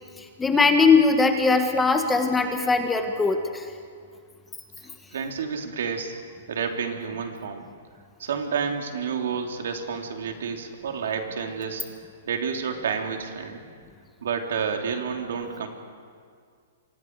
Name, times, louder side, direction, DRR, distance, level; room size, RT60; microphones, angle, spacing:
voice 1, 0.4-3.6, left 4 dB, 10° left, 5 dB, 1.4 m, -20 dB
voice 2, 5.1-6.2 6.5-7.7 8.2-11.8 12.3-13.6 14.2-15.7, right 6 dB, 75° right, 3 dB, 3.0 m, -30 dB
29.0 x 24.5 x 4.7 m, 2.2 s
hypercardioid pair, 160°, 0 cm